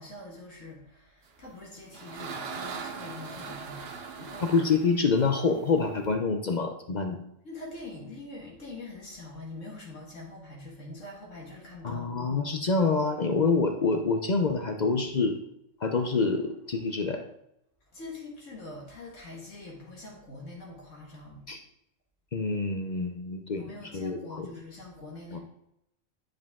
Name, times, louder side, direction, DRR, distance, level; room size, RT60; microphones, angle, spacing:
voice 1, 0.0-3.9 4.2-4.5 7.4-12.1 17.9-21.4 23.6-25.4, left 2 dB, 70° left, -3 dB, 1.9 m, -44 dB
sound 1, 1.5-6.1, right 5 dB, 55° right, 0.9 m, -41 dB
voice 2, 4.4-7.2 11.8-15.4 15.8-17.2 21.5-21.6 22.3-24.5 25.3-25.4, left 4 dB, 45° left, 4 dB, 0.6 m, -27 dB
9.6 x 5.2 x 3.5 m, 0.79 s
omnidirectional pair, 1.3 m